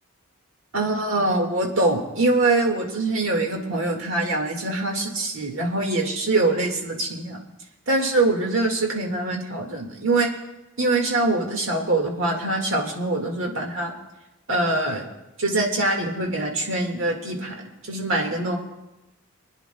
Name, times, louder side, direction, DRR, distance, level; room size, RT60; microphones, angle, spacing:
voice 1, 0.7-7.4 7.9-10.3 10.8-13.9 14.5-15.1 15.4-17.5 17.9-18.6, right 2 dB, 65° right, 1 dB, 1.9 m, -23 dB
28.0 x 10.0 x 2.3 m, 0.98 s
head